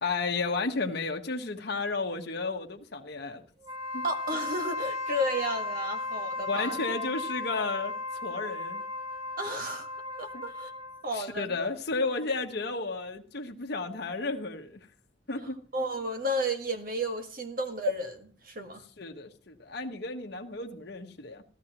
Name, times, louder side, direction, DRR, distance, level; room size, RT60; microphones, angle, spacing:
voice 1, 0.0-3.4 3.9-4.0 6.5-7.9 8.2-8.8 10.3-10.4 11.1-14.8 15.3-15.6 19.0-21.4, left 3 dB, 60° left, 1.2 m, -33 dB
Wind instrument woodwind instrument, 3.6-11.1, left 2 dB, 20° right, 2.8 m, -35 dB
voice 2, 4.0-6.8 9.4-9.9 10.2-10.7 11.0-11.7 15.4-18.8, equal, 50° right, 1.6 m, -33 dB
15.5 x 13.0 x 3.0 m
head